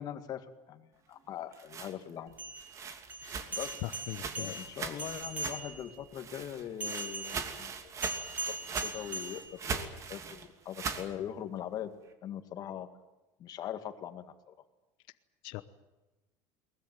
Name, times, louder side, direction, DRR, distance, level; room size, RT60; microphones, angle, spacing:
voice 1, 0.0-2.3 3.5-3.8 4.4-7.9 8.8-11.9 12.2-12.9 13.4-14.5, left 10 dB, 45° left, 9 dB, 2.2 m, -41 dB
sound 1, 1.3-5.8 6.1-11.1, right 5 dB, 35° right, 2.7 m, -40 dB
sound 2, 2.3-6.0 6.8-10.0, right 1 dB, 15° right, 6.5 m, -40 dB
voice 2, 3.8-4.5 15.4-15.6, left 17 dB, 65° left, 12 dB, 1.1 m, -40 dB
22.0 x 20.0 x 9.3 m, 1.1 s
cardioid pair, 135°, 9 cm